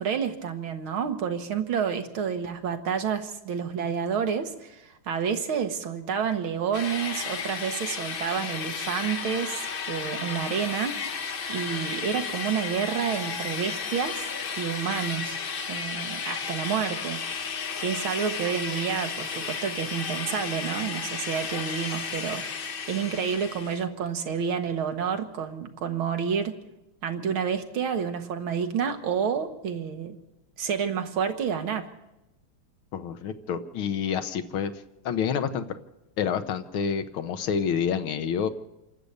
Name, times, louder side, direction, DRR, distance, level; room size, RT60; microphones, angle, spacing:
voice 1, 0.0-11.0 11.5-14.3 14.6-15.4 15.7-17.2 17.8-22.4 22.9-26.6 27.0-30.2 30.6-31.9, right 7 dB, 85° right, 6 dB, 2.3 m, -29 dB
sound 1, 6.7-23.8, left 6 dB, 50° left, 0.6 m, -33 dB
voice 2, 32.9-34.7 35.1-35.8 36.2-38.5, left 7 dB, 90° left, 10 dB, 1.9 m, -28 dB
27.5 x 12.0 x 8.2 m, 0.97 s
omnidirectional pair, 2.2 m